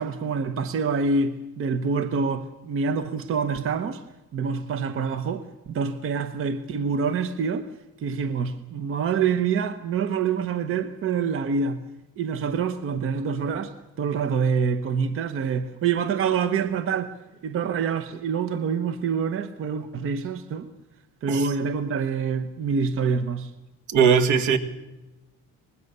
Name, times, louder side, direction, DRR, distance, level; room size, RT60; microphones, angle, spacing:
voice 1, 0.0-4.0 4.3-7.7 8.0-11.8 12.2-17.1 17.4-20.7 21.2-23.5, right 5 dB, 40° right, 1.0 m, -26 dB
voice 2, 23.9-24.6, right 7 dB, 60° right, 2.1 m, -19 dB
25.0 x 20.5 x 6.7 m
cardioid pair, 165°, 34 cm